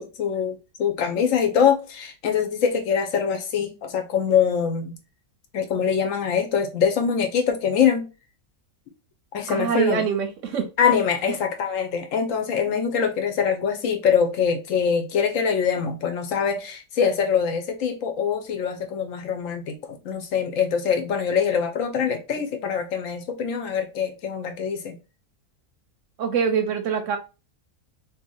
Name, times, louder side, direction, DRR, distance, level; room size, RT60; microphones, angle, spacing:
voice 1, 0.0-4.9 5.5-8.1 9.3-10.0 10.8-19.7 20.0-25.0, left 7 dB, 70° left, 0.9 m, -23 dB
voice 2, 9.5-10.7 26.2-27.2, right 7 dB, 70° right, 0.8 m, -24 dB
2.8 x 2.7 x 3.7 m
omnidirectional pair, 1.6 m